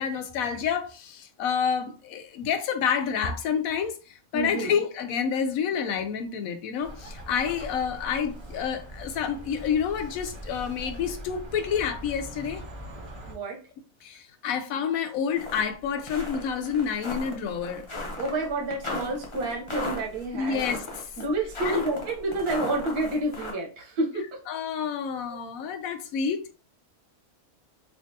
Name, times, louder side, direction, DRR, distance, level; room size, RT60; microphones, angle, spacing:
voice 1, 0.0-12.6 14.0-17.9 20.3-21.1 21.6-21.8 24.5-26.5, left 7 dB, 70° left, 0.9 m, -29 dB
voice 2, 4.3-4.7 13.3-13.6 18.2-20.6 21.2-24.3 25.3-25.4, right 2 dB, 80° right, 1.5 m, -29 dB
Bird, 6.8-13.3, right 1 dB, 45° right, 0.3 m, -41 dB
sound 1, 15.4-15.6 16.0-23.5, left 2 dB, 25° left, 0.7 m, -36 dB
3.4 x 2.8 x 2.7 m
omnidirectional pair, 1.6 m